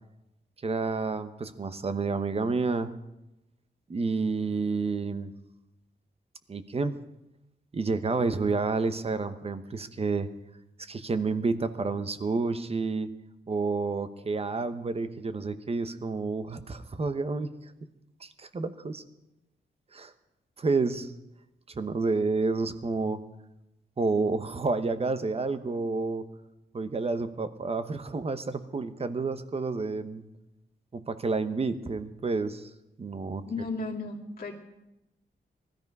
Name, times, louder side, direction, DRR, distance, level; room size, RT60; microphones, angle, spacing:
voice 1, 0.6-2.9 3.9-5.3 6.5-6.9 7.7-10.3 10.9-13.1 13.5-17.5 18.2-19.0 19.9-20.1 20.6-21.1 21.7-23.2 24.0-26.3 26.7-30.2 30.9-32.7 33.0-33.4, right 4 dB, 35° right, 11 dB, 0.9 m, -29 dB
voice 2, 33.4-34.5, left 3 dB, 55° left, -2 dB, 2.2 m, -34 dB
19.5 x 13.5 x 5.4 m, 0.92 s
wide cardioid pair, 170°, 18 cm